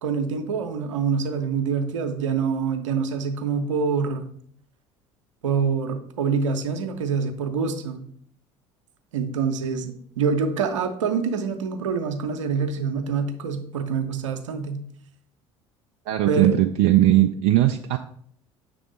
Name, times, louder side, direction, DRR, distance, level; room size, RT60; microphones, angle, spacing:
voice 1, 0.0-4.3 5.4-8.0 9.1-14.8 16.3-16.5, right 5 dB, 75° right, 6 dB, 0.8 m, -25 dB
voice 2, 16.1-18.0, right 14 dB, 55° right, 5 dB, 0.5 m, -19 dB
6.8 x 3.5 x 5.2 m, 0.62 s
figure-of-eight pair, 65°, 16 cm